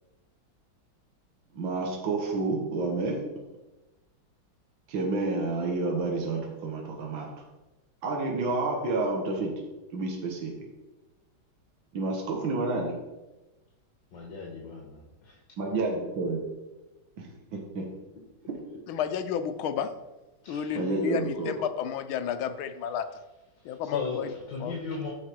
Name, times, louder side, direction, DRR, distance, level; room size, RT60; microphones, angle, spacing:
voice 1, 1.5-3.2 4.9-7.3 8.0-9.5 9.9-10.5 11.9-13.0 15.6-16.4 17.2-17.3 17.5-17.9 18.5-18.6 20.7-21.5, right 3 dB, 70° right, 0 dB, 2.2 m, -29 dB
voice 2, 14.1-15.4 20.4-20.9 23.6-25.1, left 4 dB, 65° left, -1 dB, 2.1 m, -37 dB
voice 3, 18.9-19.9 20.5-23.2 23.6-24.3 24.6-24.8, left 8 dB, 80° left, 10 dB, 1.6 m, -31 dB
14.0 x 5.8 x 4.6 m, 1.1 s
omnidirectional pair, 2.2 m